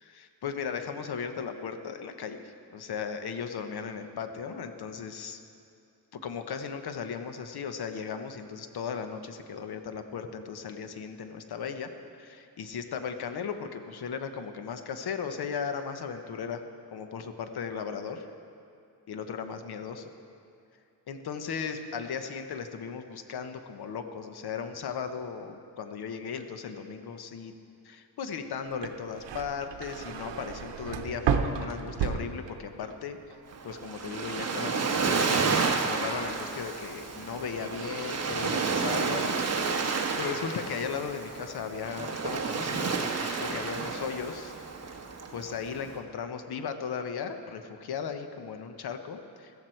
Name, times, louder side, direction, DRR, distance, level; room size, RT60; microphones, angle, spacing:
voice 1, 0.1-5.4 6.1-16.6 16.9-18.3 19.1-20.1 21.1-27.5 27.8-33.4 33.6-44.5 45.3-49.7, left 6 dB, 60° left, 8 dB, 1.0 m, -37 dB
sound 1, 28.7-33.0 33.3-33.9, right 7 dB, 85° right, 0.9 m, -32 dB
Waves surf, 33.5-45.9, right 4 dB, 35° right, 1.2 m, -31 dB
15.0 x 14.0 x 4.5 m, 2.5 s
wide cardioid pair, 125°, 42 cm